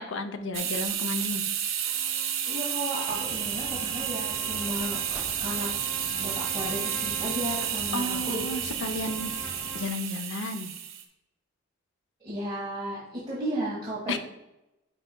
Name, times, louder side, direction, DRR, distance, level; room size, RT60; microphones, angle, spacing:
voice 1, 0.0-1.4 1.7-1.9 7.9-9.3 9.7-10.7 14.1-14.2, left 2 dB, 70° left, 8 dB, 0.6 m, -33 dB
sound 1, 0.5-11.0, right 9 dB, 85° right, 0.9 m, -31 dB
Trumpet, 1.8-9.9, right 2 dB, 15° left, 1.2 m, -44 dB
voice 2, 2.5-5.0 5.4-5.7 6.2-8.4 12.2-14.2, equal, 25° right, -9 dB, 1.6 m, -34 dB
sound 2, 3.1-9.8, right 1 dB, 5° right, 0.4 m, -45 dB
9.8 x 4.8 x 2.2 m, 0.93 s
head